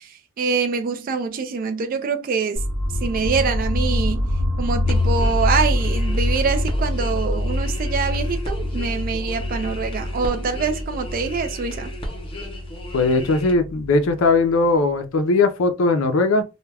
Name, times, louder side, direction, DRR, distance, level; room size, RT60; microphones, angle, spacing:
voice 1, 0.0-2.6 3.0-4.3 4.6-12.0, right 5 dB, 45° right, 0.3 m, -25 dB
sound 1, 2.5-14.5, left 1 dB, 70° right, 0.8 m, -25 dB
sound 2, 4.8-13.5, left 1 dB, 25° left, 0.7 m, -36 dB
voice 2, 12.9-16.4, left 3 dB, 75° left, 0.4 m, -19 dB
2.2 x 2.2 x 3.3 m
head